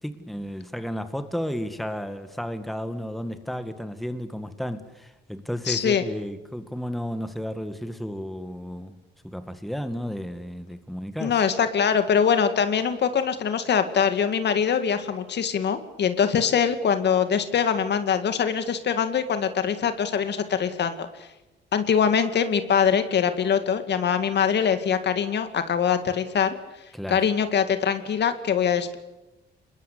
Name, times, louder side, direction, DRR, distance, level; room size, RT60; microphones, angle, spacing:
voice 1, 0.0-9.0 9.2-11.4 26.9-27.2, equal, ahead, 1.9 m, -33 dB
voice 2, 5.7-6.0 11.2-21.1 21.7-26.5 27.1-29.0, left 7 dB, 60° left, 2.2 m, -23 dB
26.0 x 21.0 x 8.4 m
cardioid pair, 90°, 20 cm